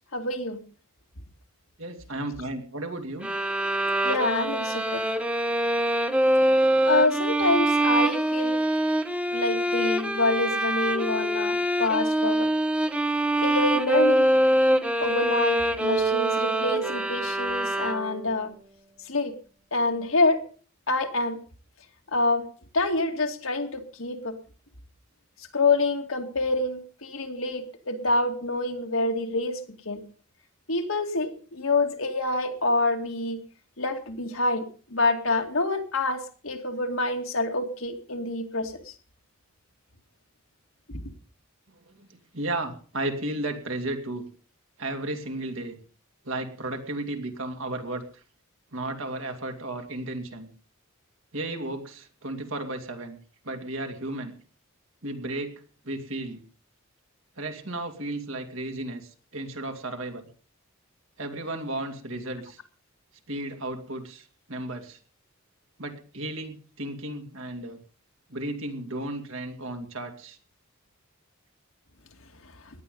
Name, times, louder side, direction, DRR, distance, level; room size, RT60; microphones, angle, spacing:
voice 1, 0.1-0.6 4.0-5.0 6.9-8.6 9.3-12.5 13.4-14.3 15.0-18.5 19.1-19.3 19.7-20.4 20.9-21.4 22.1-22.5 22.7-24.4 25.5-29.6 29.9-30.0 30.7-33.4 33.8-34.7 34.9-38.7 40.9-41.0, left 2 dB, 70° left, 4 dB, 2.3 m, -26 dB
voice 2, 1.8-3.3 41.7-44.3 44.8-45.8 46.2-48.0 48.7-50.5 51.3-53.2 53.4-54.3 55.0-56.4 57.4-60.3 61.2-62.6 63.3-65.0 65.8-67.8 68.3-70.4, right 2 dB, 70° right, 4 dB, 2.8 m, -34 dB
sound 1, 3.2-18.3, right 1 dB, 5° right, 1.0 m, -24 dB
18.0 x 11.0 x 5.4 m, 0.41 s
head